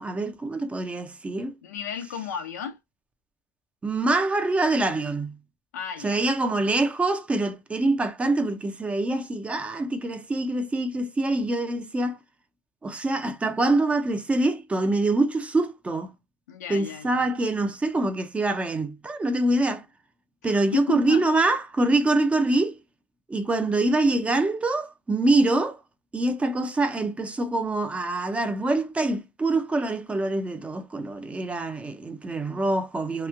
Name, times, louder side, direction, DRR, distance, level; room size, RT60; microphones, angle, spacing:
voice 1, 0.0-1.5 3.8-5.4 6.0-12.2 12.8-16.1 16.7-19.9 20.4-22.8 23.3-25.8 26.1-33.3, right 2 dB, 15° right, 0.5 m, -25 dB
voice 2, 1.6-2.8 5.7-6.2 16.5-17.2 20.4-21.2, left 7 dB, 85° left, 0.8 m, -34 dB
3.0 x 2.4 x 2.3 m
supercardioid pair, 105°, 9 cm